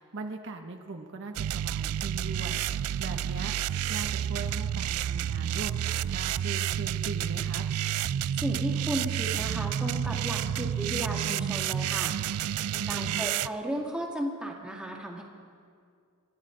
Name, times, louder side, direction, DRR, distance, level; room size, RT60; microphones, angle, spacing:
voice 1, 0.0-7.7 12.7-13.3, right 3 dB, 55° right, 3 dB, 0.9 m, -40 dB
sound 1, 1.4-13.5, right 10 dB, 75° right, 0.3 m, -30 dB
voice 2, 8.4-12.1 12.9-15.2, equal, 5° right, -2 dB, 2.0 m, -34 dB
29.5 x 12.5 x 3.9 m, 2.3 s
head